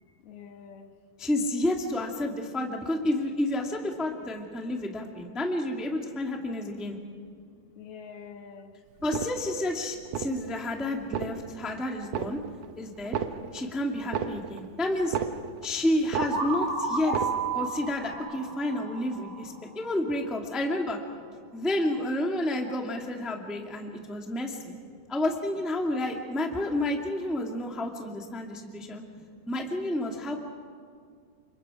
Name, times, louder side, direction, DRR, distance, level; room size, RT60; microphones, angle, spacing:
voice 1, 0.2-0.9 4.5-5.4 6.1-6.5 6.8-8.8 10.8-11.1 11.5-11.7 12.2-13.0 13.2-13.7 14.6-14.8 15.6-15.7 18.1-18.2 18.6-18.7 19.2-19.8 20.5-20.6 23.9-24.3 24.9-25.0 27.4-27.7 28.2-29.4 29.9-30.0, left 6 dB, 90° left, 6 dB, 3.5 m, -52 dB
voice 2, 1.2-7.0 9.0-12.4 12.8-13.2 13.5-15.2 15.6-17.1 17.5-21.0 21.5-24.8 25.1-29.0 29.5-30.4, left 1 dB, ahead, 1 dB, 1.0 m, -30 dB
sound 1, 9.0-9.7 10.0-10.7 11.0-11.7 12.0-12.7 13.0-15.7 16.0-16.7 17.0-17.7 18.0-18.1, right 8 dB, 80° right, 1.4 m, -34 dB
sound 2, 16.2-19.9, right 3 dB, 40° right, 4.1 m, -32 dB
29.5 x 26.5 x 5.0 m, 2.1 s
omnidirectional pair, 4.3 m